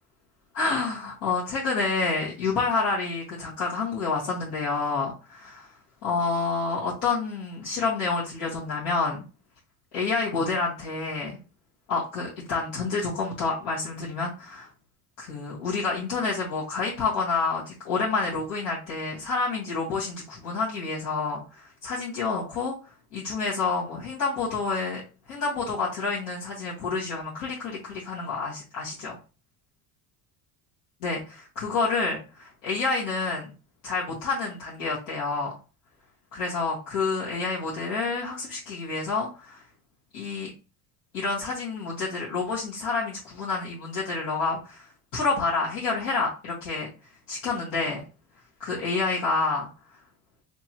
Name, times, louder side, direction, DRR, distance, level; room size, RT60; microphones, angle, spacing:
voice 1, 0.5-5.7 6.0-9.2 9.9-11.4 11.9-14.7 15.2-25.0 25.3-29.2 31.0-33.5 33.8-35.5 36.3-39.6 40.1-40.5 41.1-46.9 47.3-48.0 48.6-49.7, left 4 dB, 85° left, -7 dB, 1.7 m, -28 dB
3.5 x 3.0 x 2.9 m, 0.33 s
cardioid pair, 120°, 41 cm